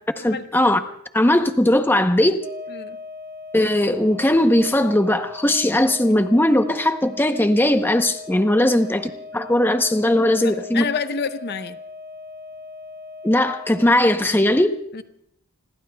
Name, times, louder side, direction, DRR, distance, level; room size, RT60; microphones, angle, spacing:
voice 1, 0.2-0.8 1.1-2.4 3.5-10.8 13.2-14.8, left 1 dB, 10° left, 7 dB, 0.7 m, -19 dB
sound 1, 2.4-13.9, left 3 dB, 50° right, 3.9 m, -39 dB
voice 2, 10.4-11.8 14.9-15.0, left 5 dB, 50° left, 10 dB, 0.7 m, -28 dB
29.5 x 21.5 x 2.3 m, 0.72 s
head